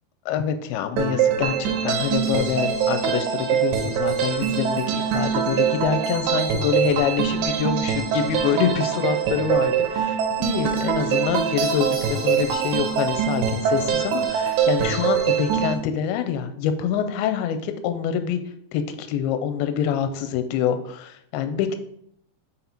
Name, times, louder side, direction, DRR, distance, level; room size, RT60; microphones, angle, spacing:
voice 1, 0.3-18.4 18.7-21.8, left 8 dB, 80° left, 9 dB, 2.4 m, -26 dB
sound 1, 1.0-15.7, right 8 dB, 80° right, 2.0 m, -23 dB
5.6 x 4.1 x 4.3 m, 0.69 s
omnidirectional pair, 4.7 m